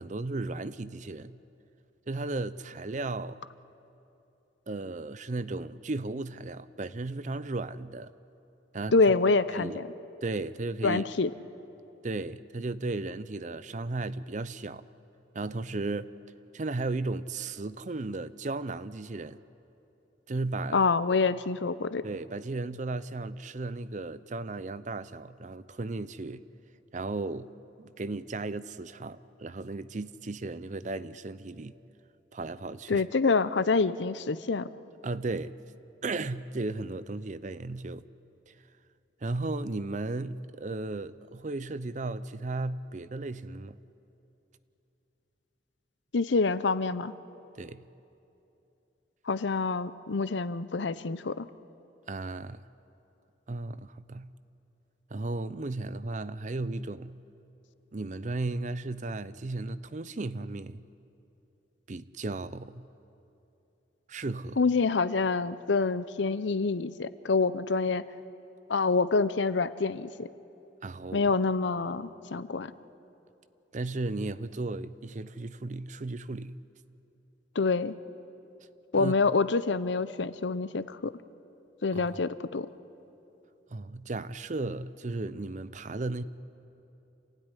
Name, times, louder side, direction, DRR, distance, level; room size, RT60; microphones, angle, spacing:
voice 1, 0.0-1.4 2.1-3.4 4.7-8.1 8.7-9.1 9.5-9.8 10.2-11.0 12.0-14.8 15.3-16.1 16.5-19.4 20.3-20.8 22.0-26.4 26.9-27.5 27.8-31.7 32.3-33.0 35.0-35.6 36.0-38.1 38.5-38.6 39.2-43.8 47.6-47.9 52.1-52.6 53.5-54.3 55.1-57.2 57.9-60.8 61.9-62.9 64.1-64.6 70.8-71.3 73.7-76.6 78.9-79.2 81.9-82.1 83.7-86.2, right 2 dB, 40° right, 0.6 m, -35 dB
voice 2, 8.9-9.9 10.8-11.3 20.7-22.0 32.9-34.7 46.1-47.1 49.3-51.5 64.6-68.1 68.7-70.3 71.1-72.7 77.5-77.9 78.9-81.1 81.8-82.7, left 4 dB, 75° left, 0.7 m, -26 dB
27.5 x 16.5 x 9.9 m
head